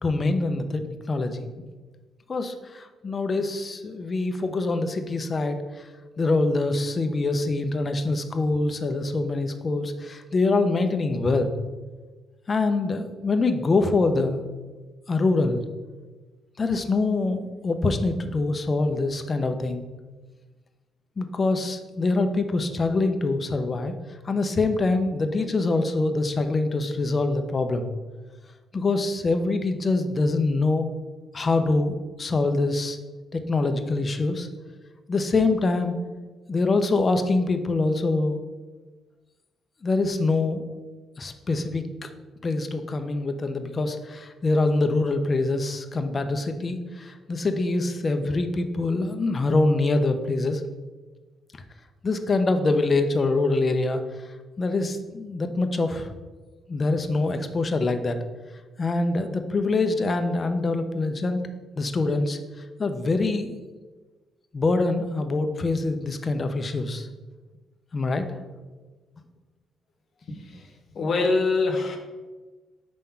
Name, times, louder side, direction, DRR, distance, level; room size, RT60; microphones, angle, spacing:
voice 1, 0.0-1.5 2.3-5.9 6.2-11.6 12.5-14.4 15.1-15.6 16.6-19.8 21.2-23.9 24.2-27.9 28.7-30.9 31.3-33.0 33.3-34.5 35.1-36.0 36.5-38.4 39.8-40.7 41.2-42.1 42.4-50.6 52.0-54.0 54.6-56.1 56.7-58.2 58.8-61.4 61.8-62.4 62.8-63.5 64.5-67.1 67.9-68.3, left 3 dB, 35° left, 7 dB, 0.6 m, -24 dB
voice 2, 70.3-72.0, left 3 dB, 55° left, 3 dB, 1.0 m, -25 dB
5.1 x 3.7 x 5.7 m, 1.3 s
cardioid pair, 90°, 0 cm